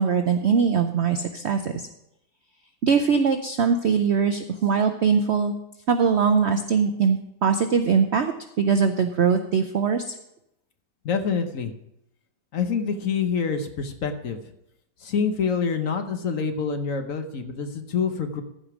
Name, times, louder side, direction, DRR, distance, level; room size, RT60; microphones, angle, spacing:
voice 1, 0.0-1.9 2.8-5.5 5.9-10.2, right 6 dB, 65° right, 7 dB, 0.6 m, -22 dB
voice 2, 11.0-11.7 12.5-14.4 15.0-18.4, left 6 dB, 55° left, 7 dB, 1.1 m, -26 dB
14.5 x 5.2 x 6.0 m, 0.82 s
omnidirectional pair, 1.8 m